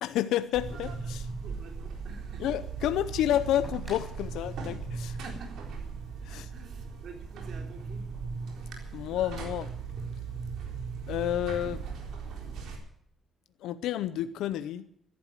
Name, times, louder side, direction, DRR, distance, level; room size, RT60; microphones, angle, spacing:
voice 1, 0.0-1.2 2.4-5.2 6.2-6.5 8.9-9.7 11.1-11.9 13.6-14.9, left 12 dB, 85° left, 13 dB, 0.6 m, -30 dB
Buzz, 0.5-12.8, right 5 dB, 80° right, 3.9 m, -38 dB
voice 2, 1.4-2.5 5.1-5.7 6.3-8.1 8.6-8.7, right 4 dB, 65° right, 4 dB, 3.6 m, -48 dB
sound 1, 3.6-6.5 7.7-7.8, right 1 dB, 20° right, 6.2 m, -52 dB
14.0 x 11.5 x 7.5 m, 0.70 s
cardioid pair, 90°, 0 cm